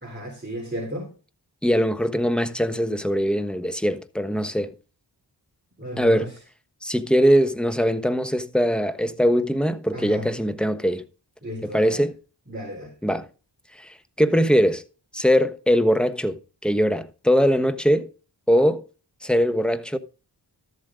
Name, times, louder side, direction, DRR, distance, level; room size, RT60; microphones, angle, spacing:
voice 1, 0.0-1.1 5.8-6.3 9.9-10.3 11.4-12.0 12.5-12.9, equal, 25° right, 3.6 m, -34 dB
voice 2, 1.6-4.7 6.0-6.3 6.8-11.0 11.6-12.2 13.0-13.3 13.8-14.8 15.1-18.1 18.5-18.8 19.2-20.0, equal, ahead, 1.1 m, -21 dB
13.0 x 7.7 x 3.7 m
wide cardioid pair, 50°, 44 cm